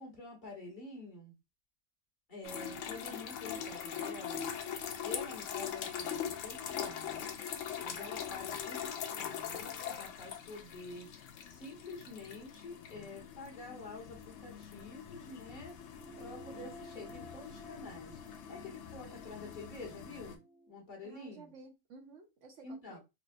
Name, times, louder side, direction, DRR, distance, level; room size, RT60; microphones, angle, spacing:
voice 1, 0.0-1.3 2.3-4.5 5.0-7.4 7.8-11.1 11.5-15.8 16.2-18.2 18.5-20.4 20.7-21.5 22.6-23.0, left 2 dB, 35° left, 1.6 m, -48 dB
sound 1, 2.4-20.4, left 8 dB, 70° left, 0.9 m, -42 dB
sound 2, 16.0-20.8, equal, 80° right, 1.7 m, -54 dB
voice 2, 21.0-23.0, right 3 dB, 65° right, 1.1 m, -54 dB
4.7 x 2.1 x 2.4 m
omnidirectional pair, 1.5 m